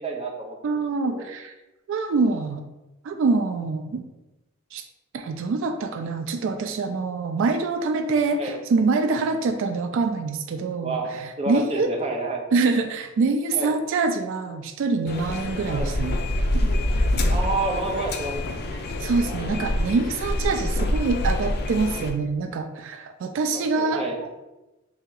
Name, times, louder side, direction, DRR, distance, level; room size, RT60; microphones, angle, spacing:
voice 1, 0.0-1.2 8.4-8.6 10.8-12.4 13.5-13.7 15.7-15.9 17.3-18.3 23.5-24.2, right 2 dB, 30° right, 0 dB, 0.7 m, -29 dB
voice 2, 0.6-1.5 1.9-2.6 3.0-4.0 4.7-4.8 5.1-11.9 12.5-16.2 16.5-16.6 19.0-24.3, right 4 dB, 65° right, 6 dB, 0.3 m, -25 dB
sound 1, 15.1-22.1, left 1 dB, 50° left, 0.4 m, -26 dB
3.3 x 2.7 x 3.8 m, 1.0 s
head